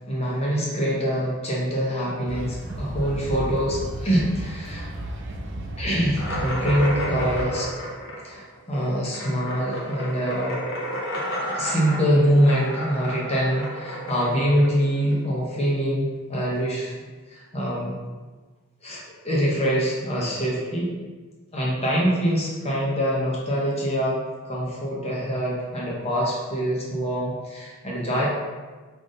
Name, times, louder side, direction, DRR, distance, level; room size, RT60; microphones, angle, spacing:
voice 1, 0.1-4.9 5.8-7.7 8.2-10.6 11.5-16.9 17.3-17.9 18.8-20.9 21.5-24.2 24.4-28.3, equal, 25° left, -5 dB, 0.9 m, -24 dB
sound 1, 2.3-7.5, right 1 dB, 55° right, 0.5 m, -33 dB
sound 2, 6.2-15.5, equal, 60° left, 0.8 m, -31 dB
3.9 x 3.5 x 3.8 m, 1.3 s
head